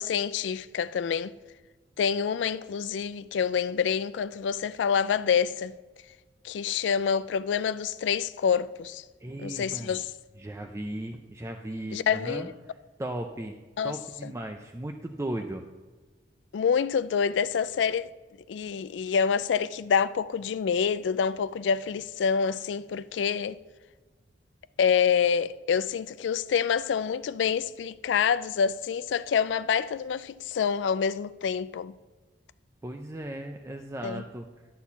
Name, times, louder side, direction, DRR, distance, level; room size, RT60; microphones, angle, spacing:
voice 1, 0.0-1.3 2.0-5.7 6.4-9.0 9.4-10.1 11.9-12.5 13.8-13.9 14.2-14.3 16.5-18.1 18.5-23.6 24.8-31.9 34.0-34.2, left 7 dB, 80° left, 0.3 m, -27 dB
voice 2, 9.2-10.0 10.4-13.6 13.8-15.6 32.8-34.5, right 1 dB, 15° right, 0.4 m, -36 dB
11.5 x 4.2 x 7.0 m
head